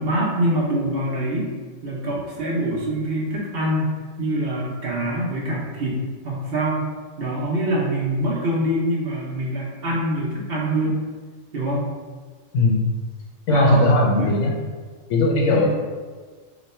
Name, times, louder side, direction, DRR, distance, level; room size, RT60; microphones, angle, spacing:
voice 1, 0.0-1.5 1.8-3.9 4.2-6.9 7.2-11.0 11.5-11.8 13.5-13.8 14.2-14.3 15.5-15.7, right 1 dB, 55° right, -5 dB, 0.9 m, -24 dB
voice 2, 13.5-14.5 15.1-15.7, left 1 dB, 75° left, 0 dB, 0.9 m, -18 dB
3.0 x 2.2 x 4.1 m, 1.5 s
omnidirectional pair, 1.4 m